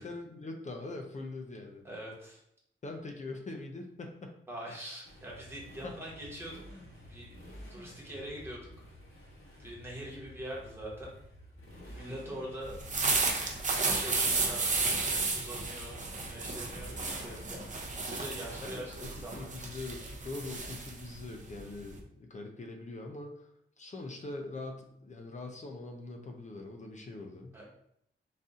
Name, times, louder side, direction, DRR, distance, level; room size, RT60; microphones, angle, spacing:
voice 1, 0.0-1.8 2.8-4.4 5.8-6.0 12.1-12.4 18.6-23.5 23.8-27.6, left 2 dB, 35° left, 3 dB, 0.5 m, -43 dB
voice 2, 1.8-2.4 4.5-6.6 7.0-7.4 7.7-8.9 9.6-11.2 11.9-12.7 13.5-14.7 15.3-17.8 18.1-19.5 27.5-27.6, right 1 dB, 10° right, -5 dB, 1.2 m, -43 dB
Motorcycle, 5.0-20.8, equal, 75° left, 1.2 m, -52 dB
sound 1, 12.7-22.0, right 3 dB, 35° right, 0.6 m, -33 dB
4.1 x 2.6 x 3.6 m, 0.73 s
wide cardioid pair, 165°, 21 cm